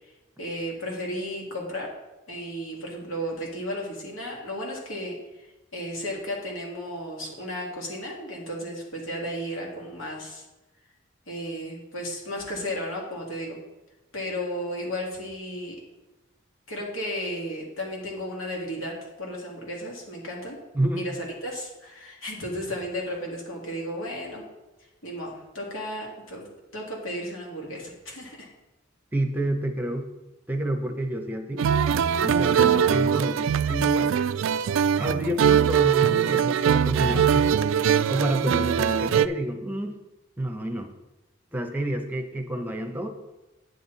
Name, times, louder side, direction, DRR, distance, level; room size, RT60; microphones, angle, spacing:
voice 1, 0.4-1.9 2.3-5.2 5.7-10.4 11.3-13.6 14.1-15.7 16.7-20.6 21.0-24.4 25.0-26.5 26.7-28.5, equal, 85° left, -2 dB, 2.5 m, -34 dB
voice 2, 20.7-21.1 29.1-30.1 30.5-31.6 32.2-34.1 35.0-37.5 38.1-40.0 40.4-40.9 41.5-43.1, right 1 dB, 10° right, 4 dB, 0.8 m, -29 dB
sound 1, 31.6-39.3, right 8 dB, 70° right, 0.3 m, -22 dB
9.4 x 8.1 x 4.1 m, 1.0 s
head